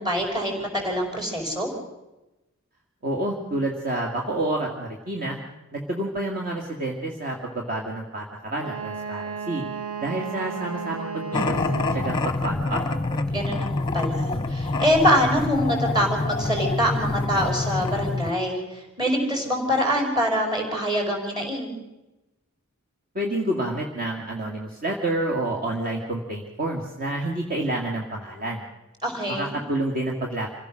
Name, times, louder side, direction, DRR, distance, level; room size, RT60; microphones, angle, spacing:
voice 1, 0.0-1.7 13.3-21.7 29.0-29.6, equal, 20° right, 1 dB, 5.4 m, -25 dB
voice 2, 3.0-5.4 5.7-9.6 10.0-11.6 11.9-12.8 23.1-28.6 29.3-30.5, right 1 dB, 45° right, 0 dB, 2.3 m, -29 dB
Wind instrument woodwind instrument, 8.6-12.3, right 6 dB, 75° right, 6.9 m, -34 dB
sound 1, 11.3-18.3, left 2 dB, 20° left, 0.9 m, -26 dB
27.0 x 16.0 x 6.4 m, 1.0 s
head